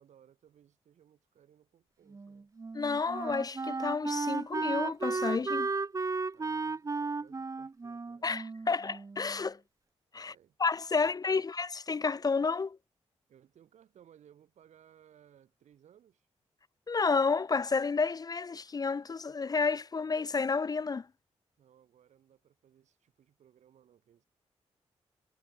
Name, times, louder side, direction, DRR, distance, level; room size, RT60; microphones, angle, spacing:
voice 1, 0.0-2.5 6.3-8.3 8.7-8.8 10.1-10.6 11.0-11.5 13.3-16.3 21.6-24.3, right 9 dB, 85° right, 5.6 m, -62 dB
Wind instrument woodwind instrument, 2.1-9.4, right 4 dB, 30° right, 0.6 m, -34 dB
voice 2, 2.7-5.7 8.2-9.6 10.1-10.3 10.6-12.8 16.9-21.1, left 4 dB, 35° left, 0.4 m, -30 dB
cardioid pair, 55°, 12 cm